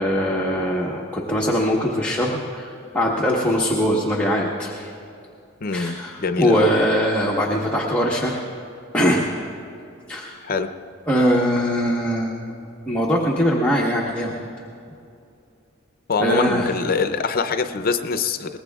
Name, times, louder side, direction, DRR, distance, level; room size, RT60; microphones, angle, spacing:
voice 1, 0.0-4.9 5.7-8.4 8.9-9.3 10.1-10.4 11.1-12.3 12.9-14.3 16.2-16.7, equal, 10° left, -3 dB, 1.2 m, -21 dB
voice 2, 5.6-6.7 10.4-10.7 16.1-18.6, left 4 dB, 50° left, 9 dB, 0.6 m, -24 dB
22.5 x 20.0 x 2.4 m, 2.6 s
head